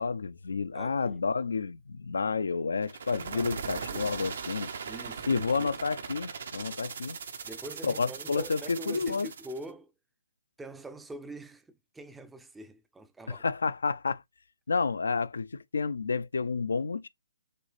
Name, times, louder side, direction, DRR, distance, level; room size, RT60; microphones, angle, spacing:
voice 1, 0.0-4.7 5.3-7.2 7.8-9.3 13.3-14.2 14.7-17.1, left 4 dB, 75° left, 0.4 m, -30 dB
voice 2, 0.7-1.2 4.9-5.7 7.4-9.9 10.6-13.4, right 1 dB, 5° right, 0.5 m, -44 dB
sound 1, 2.8-9.6, right 6 dB, 60° right, 0.7 m, -39 dB
6.6 x 2.4 x 3.2 m
figure-of-eight pair, 140°, 0 cm